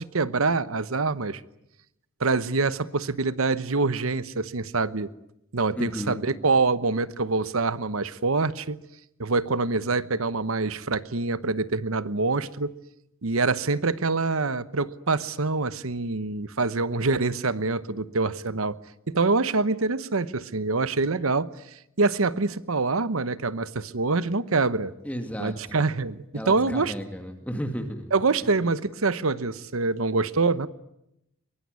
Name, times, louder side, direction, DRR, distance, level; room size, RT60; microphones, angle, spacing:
voice 1, 0.0-1.4 2.2-5.1 5.5-8.8 9.2-12.7 13.2-18.8 19.1-21.5 22.0-24.9 25.4-26.9 28.1-30.7, right 3 dB, 90° right, 15 dB, 1.0 m, -25 dB
voice 2, 5.8-6.2 25.0-25.8 26.3-28.0, equal, 5° left, 5 dB, 2.1 m, -33 dB
23.5 x 23.0 x 9.7 m, 0.83 s
head